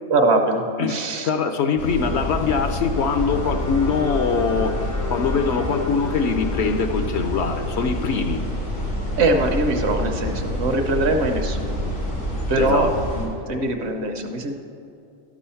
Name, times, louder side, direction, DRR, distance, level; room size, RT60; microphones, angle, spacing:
voice 1, 0.1-1.3 9.2-11.9 12.5-12.9 13.2-14.6, right 2 dB, 60° right, 5 dB, 1.0 m, -22 dB
voice 2, 0.8-4.8 5.1-8.4 12.6-12.9, left 5 dB, 65° left, 7 dB, 0.8 m, -23 dB
sound 1, 1.8-13.3, left 1 dB, 90° left, 3.0 m, -28 dB
sound 2, 2.8-9.0, left 4 dB, 20° left, 0.5 m, -36 dB
12.5 x 6.2 x 5.6 m, 2.6 s
omnidirectional pair, 1.3 m